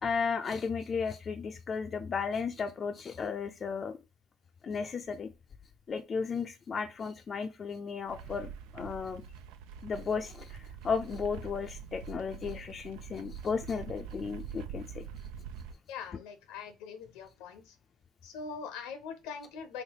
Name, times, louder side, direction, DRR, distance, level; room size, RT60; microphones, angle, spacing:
voice 1, 0.0-3.9 4.6-5.3 5.9-9.2 9.8-15.1, left 5 dB, 40° left, 0.4 m, -34 dB
sound 1, 8.1-15.7, right 7 dB, 80° right, 0.3 m, -45 dB
voice 2, 15.9-17.7 18.2-19.8, left 6 dB, 80° left, 0.7 m, -42 dB
3.2 x 2.7 x 2.8 m
hypercardioid pair, 65°, 0 cm